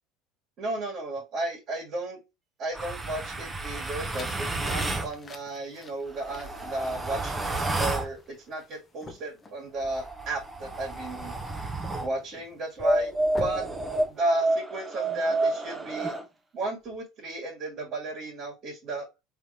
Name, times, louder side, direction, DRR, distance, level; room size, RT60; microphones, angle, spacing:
voice 1, 0.6-2.2 2.6-11.4 12.0-13.1 13.4-13.6 14.1-16.2 16.5-19.1, right 2 dB, 50° right, -1 dB, 2.0 m, -33 dB
sound 1, 2.7-5.1 6.1-8.1 9.8-12.1 12.8-16.2, right 2 dB, 20° right, 0.8 m, -30 dB
sound 2, 3.9-14.6, left 4 dB, 25° left, 0.7 m, -47 dB
3.6 x 3.4 x 2.9 m, 0.24 s
supercardioid pair, 100°, 0 cm